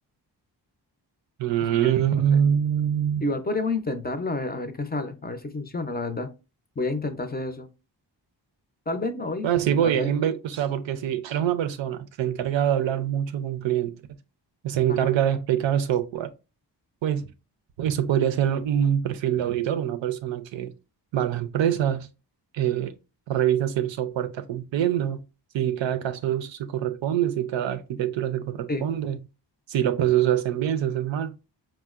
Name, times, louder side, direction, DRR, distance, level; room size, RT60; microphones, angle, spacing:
voice 1, 1.4-3.3 9.4-13.9 14.6-16.3 17.0-17.3 17.8-20.7 21.1-22.1 22.5-22.9 23.3-25.2 25.5-29.2 29.7-31.3, right 10 dB, 85° right, 0.5 m, -24 dB
voice 2, 3.2-6.3 6.8-7.7 8.9-9.5 9.8-10.1 14.9-15.1 28.7-28.9, left 2 dB, 25° left, 0.4 m, -29 dB
4.5 x 2.1 x 2.3 m
cardioid pair, 60°, 44 cm